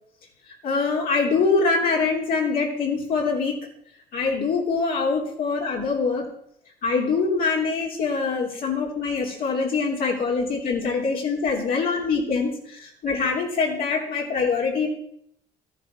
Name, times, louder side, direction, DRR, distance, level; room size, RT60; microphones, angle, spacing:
voice 1, 0.6-3.6 4.1-6.2 6.8-14.9, left 4 dB, 60° left, -2 dB, 3.2 m, -24 dB
13.5 x 10.5 x 5.5 m, 0.71 s
cardioid pair, 110°, 17 cm